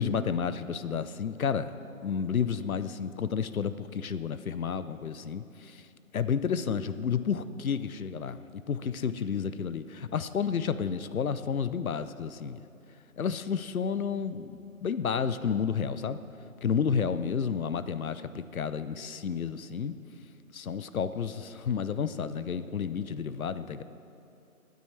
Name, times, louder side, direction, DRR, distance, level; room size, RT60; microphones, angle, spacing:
voice 1, 0.0-1.8 2.0-5.9 6.1-12.6 13.2-16.2 16.6-19.9 20.5-23.8, left 7 dB, 70° left, 13 dB, 0.7 m, -31 dB
20.0 x 9.2 x 3.3 m, 2.8 s
figure-of-eight pair, 155°, 43 cm